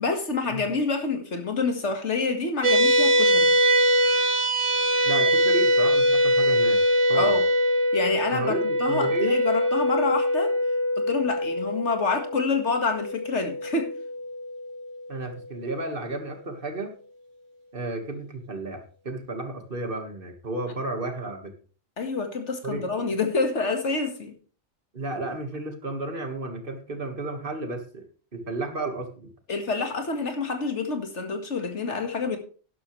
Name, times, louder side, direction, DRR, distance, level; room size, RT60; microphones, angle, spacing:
voice 1, 0.0-3.5 7.1-7.4 7.9-10.5 11.0-13.9 22.0-24.3 29.5-32.4, left 4 dB, 75° left, 2.1 m, -27 dB
sound 1, 2.6-15.3, equal, 85° right, 1.6 m, -23 dB
voice 2, 5.0-6.8 7.1-7.3 8.3-9.4 15.1-16.9 17.7-21.5 22.6-22.8 24.9-28.0 28.3-29.3, right 2 dB, 50° right, 1.9 m, -32 dB
12.0 x 11.0 x 3.2 m
omnidirectional pair, 1.2 m